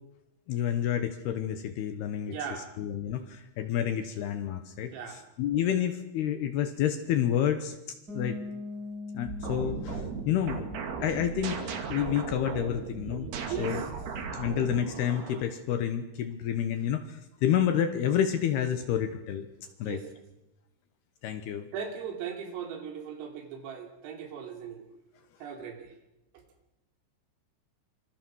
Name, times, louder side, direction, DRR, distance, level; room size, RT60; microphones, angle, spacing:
voice 1, 0.5-2.3 2.8-7.8 8.1-8.4 9.1-10.6 11.0-13.3 13.6-13.8 14.3-19.5 19.8-20.0 21.2-21.7, left 9 dB, 70° left, 9 dB, 2.6 m, -29 dB
voice 2, 2.3-2.7 4.9-5.2 13.5-13.9 19.8-20.1 21.7-24.8 25.4-25.9 26.3-26.4, right 7 dB, 85° right, 4 dB, 5.8 m, -38 dB
Bass guitar, 8.1-11.8, left 3 dB, 20° right, 6.1 m, -42 dB
sound 1, 9.3-15.5, right 5 dB, 55° right, 4.2 m, -37 dB
26.5 x 25.0 x 6.4 m, 0.92 s
omnidirectional pair, 5.8 m